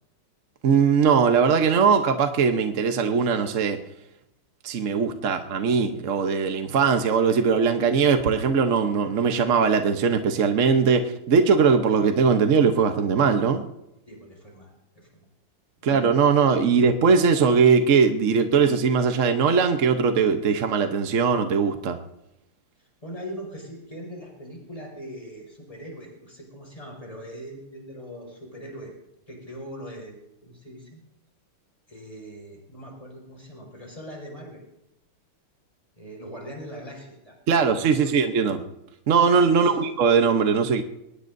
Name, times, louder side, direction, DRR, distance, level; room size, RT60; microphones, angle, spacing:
voice 1, 0.6-3.8 4.6-13.6 15.8-22.0 37.5-38.6 39.1-40.8, right 5 dB, 55° right, 6 dB, 0.9 m, -20 dB
voice 2, 14.1-15.3 22.8-28.9 29.3-31.0 31.9-34.6 36.0-38.3 39.6-39.8, equal, 15° left, 0 dB, 5.2 m, -41 dB
22.5 x 19.0 x 2.7 m, 0.87 s
omnidirectional pair, 2.4 m